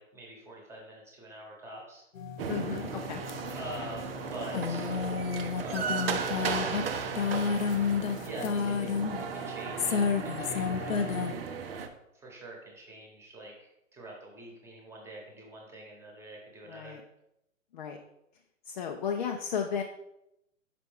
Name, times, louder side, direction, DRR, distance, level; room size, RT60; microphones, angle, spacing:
voice 1, 0.0-2.0 3.3-4.9 5.6-6.3 8.2-11.2 12.1-17.0, right 1 dB, 5° right, -1 dB, 1.2 m, -45 dB
sound 1, 2.1-11.3, left 6 dB, 75° left, 0.7 m, -32 dB
sound 2, 2.4-11.9, right 6 dB, 45° right, 0.8 m, -36 dB
voice 2, 2.5-3.2 16.7-17.0 17.7-18.0 18.7-19.8, left 7 dB, 35° left, 2 dB, 0.5 m, -34 dB
5.9 x 4.7 x 3.5 m, 0.82 s
figure-of-eight pair, 130°, 40 cm